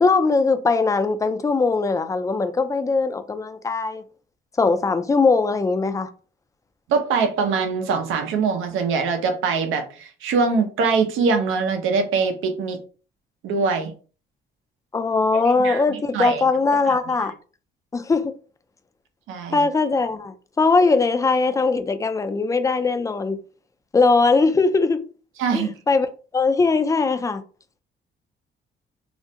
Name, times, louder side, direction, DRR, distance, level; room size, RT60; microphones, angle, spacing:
voice 1, 0.0-4.0 4.6-6.1 14.9-17.3 17.9-18.3 19.5-23.4 23.9-25.0 25.5-26.1 26.3-27.4, left 4 dB, 15° left, 0.3 m, -20 dB
voice 2, 6.9-12.8 13.4-13.9 15.4-16.4 16.8-17.3 19.3-19.7 25.4-25.7, right 5 dB, 85° right, 0.6 m, -23 dB
2.4 x 2.1 x 2.7 m
cardioid pair, 90°, 20 cm